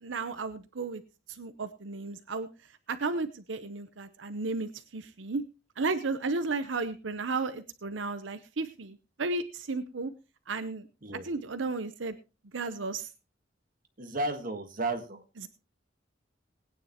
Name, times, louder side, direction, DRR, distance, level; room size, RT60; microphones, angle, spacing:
voice 1, 0.0-1.0 1.3-2.5 2.9-5.4 5.8-10.1 10.5-10.9 11.2-12.2 12.5-13.1 15.4-15.5, right 3 dB, 90° right, 10 dB, 0.8 m, -33 dB
voice 2, 14.0-15.2, right 2 dB, 50° right, 6 dB, 1.6 m, -33 dB
20.5 x 9.4 x 2.9 m, 0.30 s
head